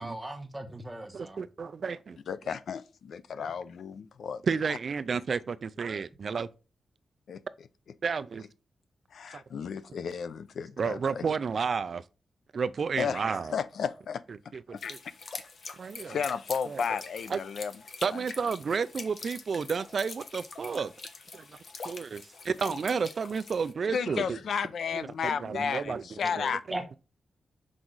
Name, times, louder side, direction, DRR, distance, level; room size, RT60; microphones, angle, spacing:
voice 1, 0.0-1.4 26.7-27.0, right 1 dB, 5° right, 1.2 m, -38 dB
voice 2, 1.1-2.2 4.4-6.5 8.0-8.5 9.3-9.4 10.8-12.0 12.5-13.5 14.5-15.0 15.8-16.2 16.6-16.8 17.3-17.4 18.0-20.9 21.3-21.6 21.8-24.4 24.9-27.0, right 5 dB, 45° right, 0.3 m, -32 dB
voice 3, 2.3-4.4 7.3-7.4 9.1-11.2 13.0-14.2 14.7-14.9 16.1-17.7 18.1-18.2 23.9-26.6, left 6 dB, 75° left, 0.5 m, -33 dB
sound 1, 14.8-23.7, left 4 dB, 50° left, 1.0 m, -44 dB
6.2 x 4.8 x 3.9 m
wide cardioid pair, 170°, 0 cm